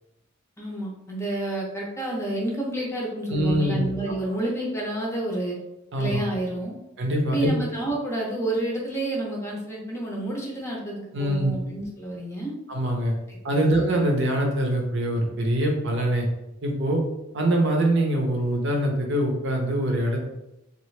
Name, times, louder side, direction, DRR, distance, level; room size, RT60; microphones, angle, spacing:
voice 1, 0.6-5.6 6.0-6.7 7.3-12.5 13.3-13.7, right 1 dB, 15° left, -2 dB, 0.6 m, -29 dB
voice 2, 3.3-3.8 5.9-6.2 7.0-7.5 11.1-11.5 12.7-13.1 13.4-16.3 16.6-17.0 17.3-20.3, right 1 dB, 60° right, 1 dB, 0.7 m, -23 dB
2.8 x 2.5 x 3.1 m, 0.91 s
head